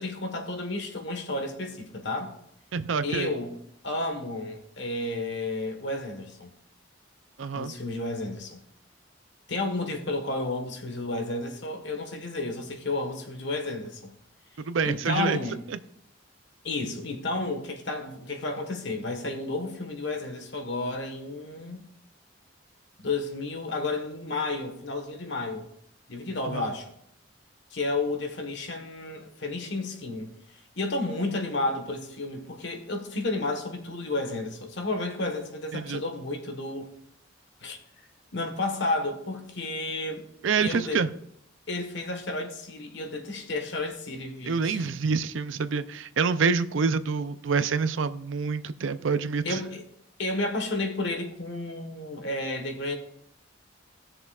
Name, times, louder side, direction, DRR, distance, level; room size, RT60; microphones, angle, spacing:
voice 1, 0.0-2.3 3.0-3.5 3.8-6.5 7.5-8.6 9.5-14.1 14.8-15.6 16.6-21.8 23.0-25.7 26.1-26.9 27.7-36.9 37.6-37.8 38.3-40.2 40.6-41.0 41.7-44.8 49.4-49.8 50.2-53.0, left 2 dB, 65° left, 4 dB, 1.4 m, -32 dB
voice 2, 2.7-3.3 7.4-7.7 14.6-15.4 15.7-15.8 26.4-26.7 35.7-36.0 40.4-41.1 44.5-49.6, right 5 dB, 85° right, 13 dB, 0.5 m, -27 dB
18.5 x 6.7 x 2.4 m, 0.73 s
head